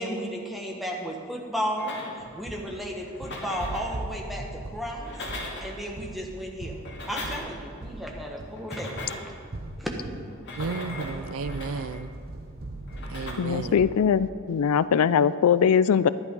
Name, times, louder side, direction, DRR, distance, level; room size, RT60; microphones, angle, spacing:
voice 1, 0.0-2.0 2.3-5.1 5.6-6.8 7.1-9.0 9.8-9.9, equal, ahead, -1 dB, 1.5 m, -33 dB
sound 1, 1.8-2.4 3.1-4.0 4.9-5.8 6.7-7.7 8.6-9.4 10.3-12.0 12.9-13.3, left 2 dB, 50° left, 2.1 m, -39 dB
sound 2, 2.2-13.9, right 2 dB, 45° right, 0.9 m, -40 dB
voice 2, 10.6-12.1 13.1-13.9, right 4 dB, 65° right, 12 dB, 0.5 m, -33 dB
voice 3, 13.4-16.1, left 7 dB, 80° left, 17 dB, 0.4 m, -21 dB
11.5 x 11.0 x 5.4 m, 2.2 s
head